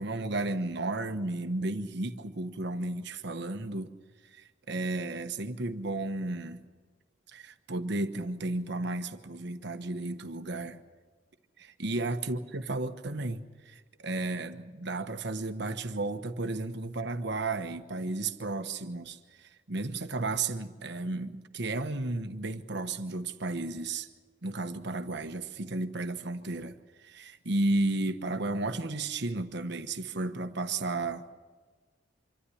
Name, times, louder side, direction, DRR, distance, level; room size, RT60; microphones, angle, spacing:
voice 1, 0.0-3.9 4.3-6.6 7.3-10.8 11.6-24.1 24.4-31.3, right 2 dB, 60° right, 1.2 m, -33 dB
26.0 x 13.0 x 10.0 m
head